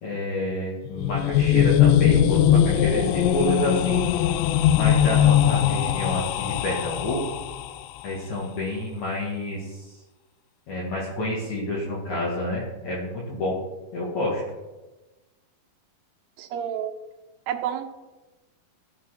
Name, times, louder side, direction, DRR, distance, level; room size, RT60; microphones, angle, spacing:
voice 1, 0.0-4.1 4.7-7.2 8.0-10.0 10.7-13.6 13.9-14.4, left 1 dB, 55° left, -6 dB, 3.0 m, -29 dB
sound 1, 0.9-7.8, left 10 dB, 85° left, 2.0 m, -20 dB
voice 2, 16.4-16.9 17.5-17.8, right 10 dB, 75° right, 5 dB, 1.6 m, -29 dB
15.0 x 5.7 x 5.7 m, 1.1 s
omnidirectional pair, 4.3 m